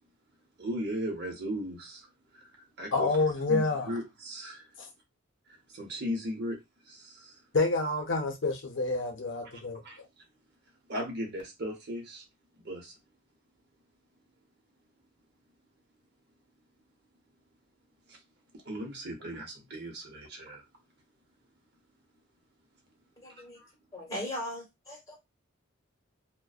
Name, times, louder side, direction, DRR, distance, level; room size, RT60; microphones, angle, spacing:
voice 1, 0.6-2.1 2.3-3.1 3.5-4.6 5.7-6.6 6.9-7.4 9.8-10.0 10.9-12.2 12.6-12.9 18.1-18.2 18.6-20.6 23.3-23.7, equal, 50° right, 0.7 m, -37 dB
voice 2, 2.9-3.9 4.8-4.9 7.5-9.8, left 3 dB, 60° left, 0.6 m, -28 dB
voice 3, 23.2-23.6 23.9-25.2, left 1 dB, 15° left, 1.3 m, -38 dB
2.5 x 2.1 x 2.3 m
head